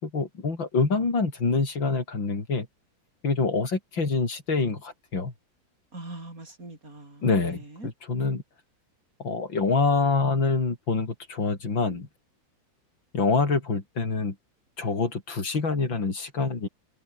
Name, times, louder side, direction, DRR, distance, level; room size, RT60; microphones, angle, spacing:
voice 1, 0.0-2.7 3.2-5.3 7.2-7.6 8.1-8.4 9.2-12.1 13.1-14.3 14.8-16.7, left 4 dB, 85° left, 4.9 m, -26 dB
voice 2, 5.9-7.9, right 2 dB, 45° right, 6.9 m, -42 dB
omnidirectional pair, 2.0 m